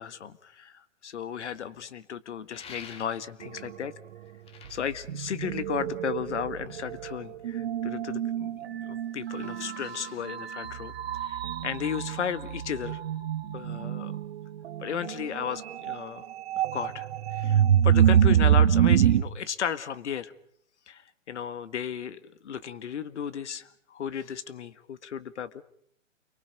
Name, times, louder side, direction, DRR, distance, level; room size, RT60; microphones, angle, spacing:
voice 1, 0.0-3.9 4.7-13.0 13.5-14.1 14.8-16.2 16.7-20.3 20.9-25.6, left 8 dB, 60° left, 14 dB, 1.6 m, -35 dB
sound 1, 2.5-3.5 4.3-6.0, left 6 dB, 15° left, 1.6 m, -48 dB
sound 2, 3.4-3.9 4.7-19.2, right 10 dB, 50° right, 1.1 m, -26 dB
29.5 x 23.5 x 5.2 m, 0.67 s
hypercardioid pair, 135°, 39 cm